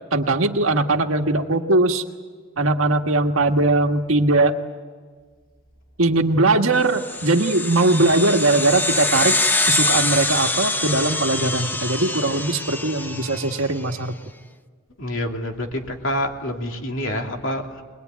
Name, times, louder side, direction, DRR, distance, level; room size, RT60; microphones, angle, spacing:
voice 1, 0.1-2.0 2.6-4.5 6.0-9.4 9.7-14.1, right 2 dB, 70° right, 4 dB, 1.6 m, -20 dB
sound 1, 6.9-13.7, left 2 dB, 10° left, 0.6 m, -24 dB
voice 2, 15.0-17.8, left 1 dB, 60° left, 2 dB, 2.9 m, -27 dB
22.5 x 21.5 x 9.4 m, 1.5 s
head